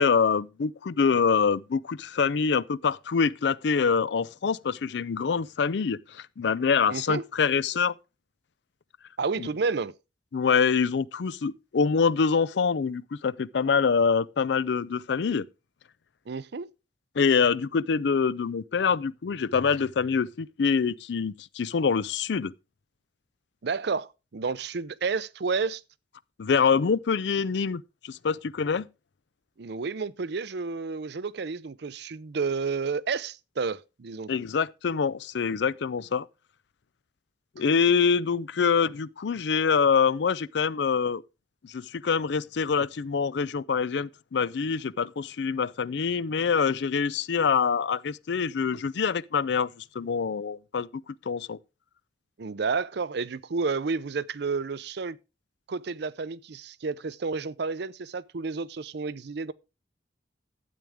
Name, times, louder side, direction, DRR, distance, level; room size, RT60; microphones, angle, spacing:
voice 1, 0.0-7.9 9.4-9.5 10.3-15.5 17.2-22.5 26.4-28.9 34.3-36.3 37.6-41.2 41.6-51.6, left 5 dB, 65° left, 0.4 m, -25 dB
voice 2, 6.9-7.2 9.2-9.9 16.3-16.7 23.6-25.8 29.6-34.3 52.4-55.2 55.7-59.5, right 4 dB, 60° right, 0.5 m, -31 dB
12.0 x 8.5 x 3.5 m
head